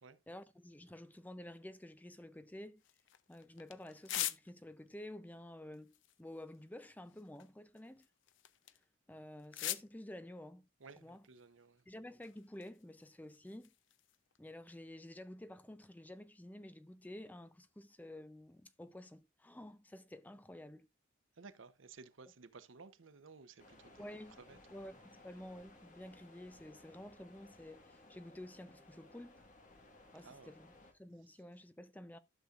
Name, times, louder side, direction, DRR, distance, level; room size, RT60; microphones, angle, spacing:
voice 1, 0.3-2.8 3.3-8.1 9.1-10.7 10.9-11.3 11.9-13.7 14.4-20.9 24.0-29.4 30.1-30.7 31.0-32.2, left 1 dB, 10° left, 0.4 m, -51 dB
sound 1, 2.8-4.9 5.7-8.9 9.4-9.9 10.8-12.0 12.2-14.4, left 13 dB, 70° left, 0.5 m, -46 dB
voice 2, 10.8-11.8 21.4-24.0 24.5-24.6 30.2-30.5, right 4 dB, 75° right, 0.8 m, -56 dB
sound 2, 23.6-30.9, left 2 dB, 40° left, 1.5 m, -61 dB
12.0 x 6.5 x 2.4 m
head